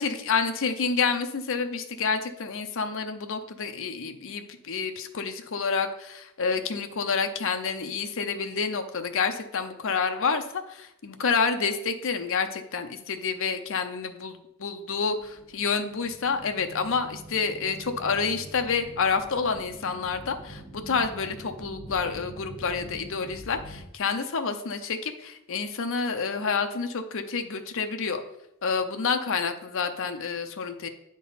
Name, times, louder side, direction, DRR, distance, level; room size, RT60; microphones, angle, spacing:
voice 1, 0.0-28.2 28.6-30.9, left 5 dB, 60° left, 7 dB, 0.6 m, -28 dB
sound 1, 14.9-23.8, equal, 5° right, 2.9 m, -45 dB
9.2 x 3.7 x 4.0 m, 0.84 s
head